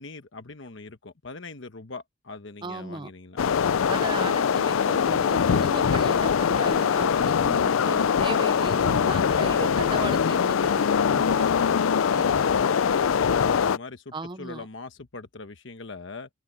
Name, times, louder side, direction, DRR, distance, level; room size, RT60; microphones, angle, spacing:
voice 1, 0.0-3.4 3.9-4.1 11.4-16.3, left 3 dB, 65° left, 1.2 m, -41 dB
voice 2, 2.6-3.1 3.9-11.5 12.1-12.2 12.9-13.0 14.1-14.7, right 2 dB, 25° right, 0.6 m, -36 dB
sound 1, 3.4-13.8, left 7 dB, 90° left, 0.4 m, -22 dB
open air
head